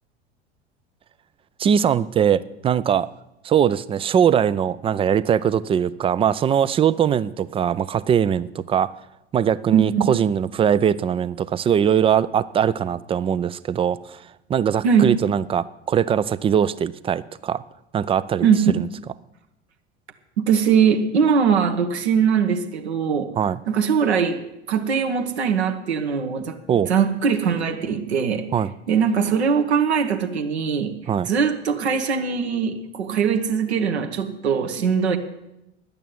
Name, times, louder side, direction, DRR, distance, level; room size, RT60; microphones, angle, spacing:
voice 1, 1.6-3.1 3.4-8.9 9.3-14.2 14.5-17.6 17.9-18.9 23.4-23.6 26.7-26.9 28.5-28.7 31.1-31.3, right 8 dB, 15° right, 18 dB, 0.4 m, -21 dB
voice 2, 9.7-10.1 14.8-15.1 18.4-18.7 20.4-23.3 23.7-26.6 26.9-28.5 28.9-31.0 31.2-35.2, right 6 dB, 70° right, 4 dB, 1.3 m, -21 dB
11.0 x 8.7 x 9.2 m, 0.88 s
figure-of-eight pair, 70°, 34 cm